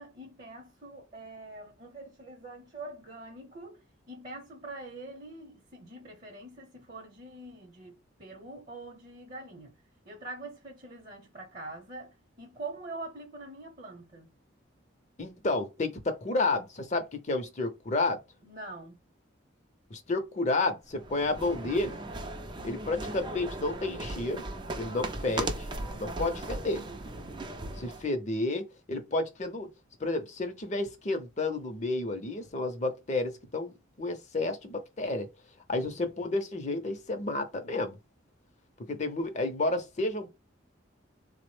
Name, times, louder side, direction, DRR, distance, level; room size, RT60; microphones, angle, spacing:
voice 1, 0.0-3.8 4.1-9.7 10.0-14.3 18.4-19.0 35.7-36.1, right 2 dB, 40° right, 0.8 m, -44 dB
voice 2, 15.2-18.2 19.9-22.0 22.6-24.5 24.7-25.7 25.9-26.9 27.8-29.7 30.0-33.7 34.0-35.3 35.7-38.0 38.9-40.3, left 2 dB, 35° left, 0.6 m, -31 dB
sound 1, 20.9-28.1, right 2 dB, 25° right, 0.4 m, -37 dB
3.6 x 2.0 x 3.1 m
head